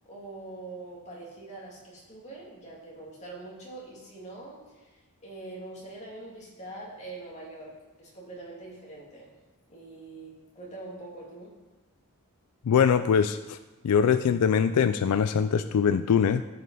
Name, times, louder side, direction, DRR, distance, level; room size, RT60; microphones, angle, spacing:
voice 1, 0.0-9.3 9.7-11.5, right 2 dB, 30° left, -4 dB, 2.6 m, -44 dB
voice 2, 12.7-13.6 13.8-16.4, left 7 dB, 90° left, 11 dB, 0.4 m, -22 dB
14.0 x 5.3 x 4.1 m, 1.1 s
head